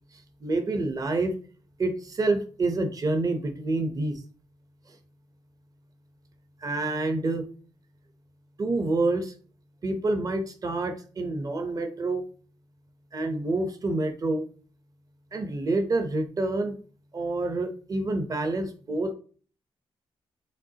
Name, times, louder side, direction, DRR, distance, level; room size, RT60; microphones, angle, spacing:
voice 1, 0.1-1.4 1.8-4.2 4.9-5.0 6.6-7.4 8.6-9.3 9.8-12.3 13.1-14.5 15.3-16.8 17.1-19.1, right 2 dB, 35° right, 8 dB, 0.7 m, -28 dB
5.2 x 3.4 x 2.8 m, 0.41 s
cardioid pair, 95°, 10 cm